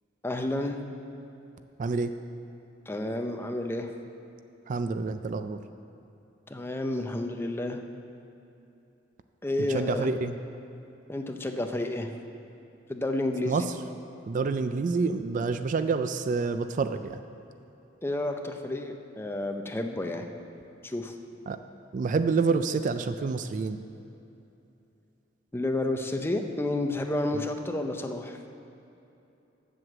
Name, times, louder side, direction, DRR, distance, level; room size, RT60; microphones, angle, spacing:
voice 1, 0.2-0.8 2.9-3.9 6.5-7.8 9.4-10.1 11.1-12.1 12.9-13.5 18.0-20.3 20.8-21.1 25.5-28.4, left 1 dB, 10° left, 4 dB, 0.6 m, -30 dB
voice 2, 1.8-2.1 4.7-5.6 9.7-10.3 13.5-13.6 14.3-17.2 21.5-21.6 21.9-23.8, right 4 dB, 40° right, 10 dB, 0.3 m, -28 dB
7.8 x 7.7 x 7.4 m, 2.8 s
head